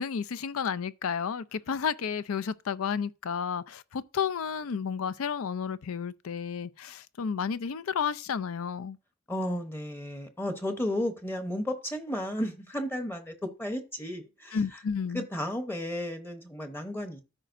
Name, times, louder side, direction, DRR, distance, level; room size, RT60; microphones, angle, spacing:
voice 1, 0.0-9.0 14.5-15.3, left 6 dB, 90° left, 0.5 m, -32 dB
voice 2, 9.3-14.6 15.1-17.2, left 1 dB, 10° left, 0.8 m, -33 dB
13.5 x 5.0 x 2.6 m
head